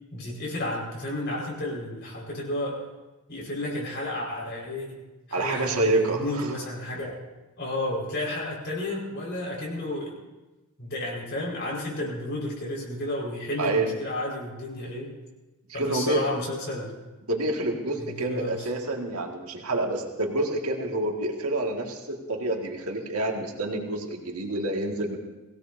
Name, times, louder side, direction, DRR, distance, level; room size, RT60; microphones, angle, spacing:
voice 1, 0.1-2.8 3.3-5.0 5.3-7.2 7.6-10.2 10.8-15.1 15.7-17.0 18.0-18.7, left 1 dB, 50° left, -3 dB, 5.0 m, -32 dB
voice 2, 5.3-6.6 13.6-13.9 15.7-16.3 17.3-25.2, right 2 dB, 85° right, 1 dB, 2.0 m, -28 dB
22.5 x 17.0 x 2.7 m, 1.1 s
head